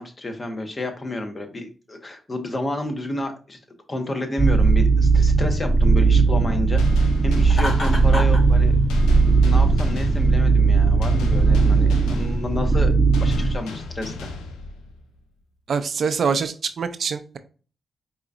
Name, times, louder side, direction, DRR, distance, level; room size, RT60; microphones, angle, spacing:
voice 1, 0.0-3.6 3.9-8.8 9.4-14.3, left 1 dB, 40° left, 5 dB, 1.1 m, -30 dB
sound 1, 4.4-13.6, right 4 dB, 20° right, 0.7 m, -18 dB
sound 2, 6.8-15.2, left 3 dB, 90° left, 0.5 m, -36 dB
Laughter, 7.5-8.4, left 1 dB, 60° left, 2.0 m, -27 dB
voice 2, 15.7-17.4, right 6 dB, 65° right, 10 dB, 0.4 m, -24 dB
4.8 x 2.8 x 2.4 m, 0.37 s
supercardioid pair, 45°, 0 cm